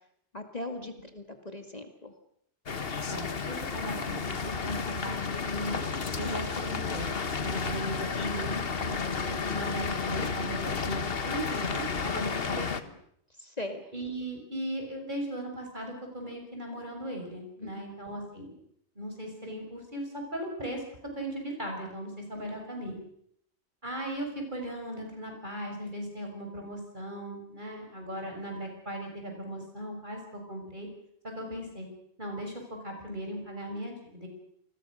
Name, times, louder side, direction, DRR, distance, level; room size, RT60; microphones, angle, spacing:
voice 1, 0.3-2.1 7.5-7.6 13.4-13.9 17.6-17.8 22.4-22.5, left 2 dB, 35° left, 5 dB, 2.3 m, -39 dB
sound 1, 2.7-12.8, left 5 dB, 55° left, 1.5 m, -32 dB
voice 2, 3.1-5.8 6.2-12.9 13.9-18.5 19.0-20.8 21.1-23.0 23.8-30.9 31.2-31.9 32.2-34.3, right 1 dB, 45° right, 2 dB, 6.9 m, -38 dB
28.0 x 22.0 x 6.5 m, 0.71 s
omnidirectional pair, 1.2 m